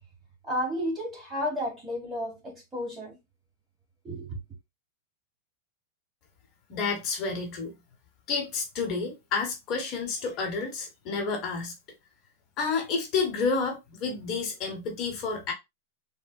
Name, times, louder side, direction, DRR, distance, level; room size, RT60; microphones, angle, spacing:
voice 1, 0.5-3.2 4.0-4.4, equal, 15° right, 1.4 m, -32 dB
voice 2, 6.7-7.7 8.3-11.7 12.6-15.5, left 4 dB, 40° left, 1.0 m, -30 dB
3.6 x 2.1 x 2.2 m
hypercardioid pair, 125°, 0 cm